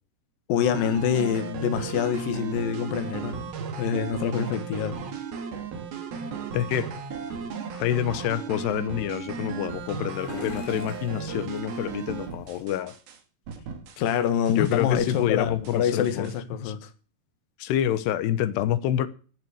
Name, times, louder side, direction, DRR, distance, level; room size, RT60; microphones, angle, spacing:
voice 1, 0.5-3.5 3.8-5.0 14.0-16.9, left 8 dB, 65° left, 3.0 m, -26 dB
sound 1, 0.6-13.2 13.5-14.2 14.5-16.3, right 6 dB, 70° right, 3.8 m, -35 dB
voice 2, 6.5-6.9 7.7-12.9 14.5-16.3 16.7-16.8 17.6-19.1, left 11 dB, 90° left, 3.1 m, -27 dB
sound 2, 9.2-12.8, left 5 dB, 40° left, 3.9 m, -45 dB
15.5 x 6.1 x 8.1 m
omnidirectional pair, 4.6 m